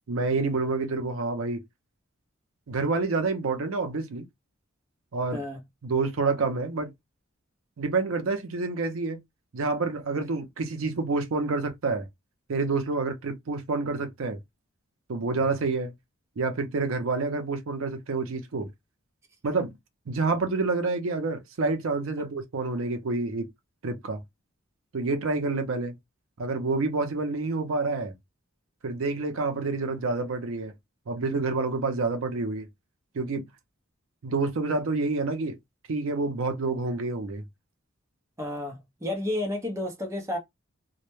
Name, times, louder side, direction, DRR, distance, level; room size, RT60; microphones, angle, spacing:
voice 1, 0.1-1.6 2.7-4.2 5.1-5.4 5.8-6.9 7.8-9.2 9.5-12.1 12.5-14.4 15.1-15.9 16.4-18.7 19.4-19.7 20.1-23.5 23.8-24.2 24.9-25.9 26.4-28.1 28.8-30.7 31.1-32.7 33.1-33.4 34.2-35.6 35.9-37.4, right 3 dB, 70° right, 0.5 m, -28 dB
voice 2, 38.4-40.4, left 1 dB, 15° right, 0.6 m, -31 dB
2.1 x 2.0 x 3.0 m
head